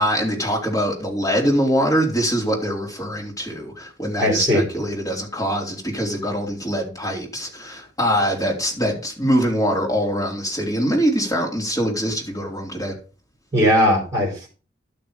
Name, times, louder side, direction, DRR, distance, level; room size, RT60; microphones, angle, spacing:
voice 1, 0.0-13.0, equal, 20° left, 4.2 m, -23 dB
voice 2, 4.2-4.6 13.5-14.5, equal, 15° right, 4.7 m, -18 dB
12.0 x 7.0 x 5.4 m
head